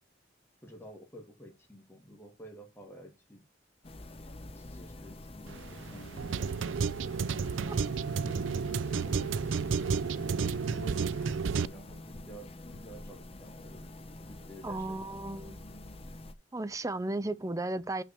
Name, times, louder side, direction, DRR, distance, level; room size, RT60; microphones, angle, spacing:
voice 1, 0.6-3.4 4.6-6.5 8.9-9.4 10.3-12.5 12.7-13.9 14.3-15.5, equal, 15° left, 2.4 m, -51 dB
sound 1, 3.8-16.3, left 1 dB, 30° left, 0.8 m, -47 dB
sound 2, 5.5-11.6, right 5 dB, 85° right, 0.5 m, -31 dB
sound 3, 5.9-10.1 10.4-12.8, left 1 dB, 55° left, 1.4 m, -53 dB
voice 2, 14.6-15.6 16.5-18.0, right 2 dB, 15° right, 0.5 m, -34 dB
6.2 x 6.0 x 6.8 m
head